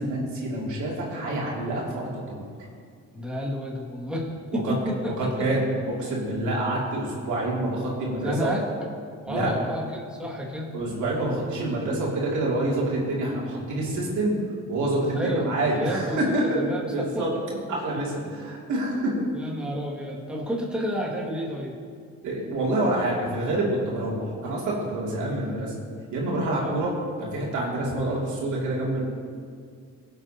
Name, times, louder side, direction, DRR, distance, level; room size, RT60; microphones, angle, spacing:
voice 1, 0.0-2.5 4.6-4.7 5.2-8.6 9.3-9.5 10.7-14.4 14.7-16.6 16.9-17.3 17.7-19.3 22.2-25.7 26.1-26.9 27.2-29.0, right 1 dB, 75° right, -5 dB, 2.9 m, -27 dB
voice 2, 3.1-5.5 8.2-8.6 9.3-10.7 15.1-15.4 15.7-17.3 17.9-18.3 19.3-21.8 26.5-26.8, equal, 5° right, -4 dB, 2.2 m, -31 dB
17.5 x 7.8 x 2.9 m, 2.2 s
cardioid pair, 80°, 30 cm